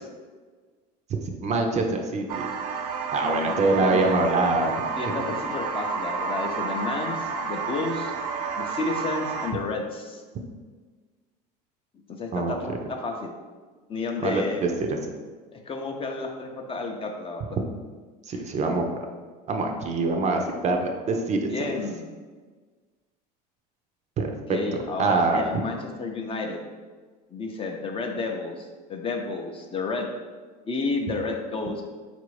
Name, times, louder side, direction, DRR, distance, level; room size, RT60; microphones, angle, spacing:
voice 1, 1.4-2.5 3.1-4.7 5.0-5.2 12.3-12.8 14.2-15.0 18.3-18.8 19.5-21.5 24.2-24.3 25.0-25.4, right 3 dB, 35° right, 3 dB, 0.5 m, -24 dB
sound 1, 2.3-9.5, right 5 dB, 90° right, 0.4 m, -30 dB
voice 2, 3.2-4.1 5.0-8.1 8.6-10.2 12.1-13.3 13.9-14.7 15.5-17.6 21.5-22.1 24.5-26.6 27.3-30.1 30.7-31.8, left 3 dB, 25° left, 2 dB, 0.5 m, -31 dB
4.1 x 2.5 x 3.1 m, 1.4 s
supercardioid pair, 95°, 21 cm